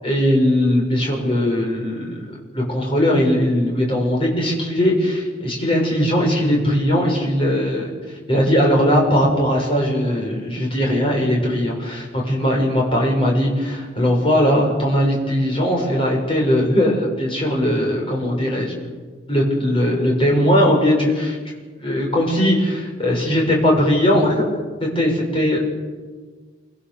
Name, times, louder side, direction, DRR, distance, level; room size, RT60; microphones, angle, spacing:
voice 1, 0.0-7.9 8.3-18.7 19.3-21.5 21.8-24.5 24.8-25.6, equal, 30° left, -1 dB, 6.9 m, -19 dB
27.5 x 25.0 x 7.2 m, 1.5 s
head